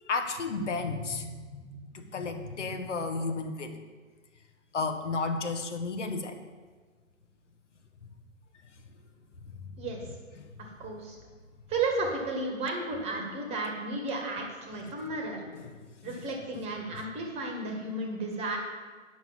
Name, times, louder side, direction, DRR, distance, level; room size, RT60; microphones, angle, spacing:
voice 1, 0.1-3.8 4.7-6.4 9.6-9.8 10.6-10.7 14.8-15.1 15.6-16.2, left 3 dB, 60° left, 6 dB, 1.2 m, -33 dB
voice 2, 10.8-11.1 11.7-15.4 16.0-18.6, right 2 dB, 15° right, 1 dB, 1.5 m, -33 dB
9.4 x 6.4 x 7.2 m, 1.5 s
figure-of-eight pair, 130°, 41 cm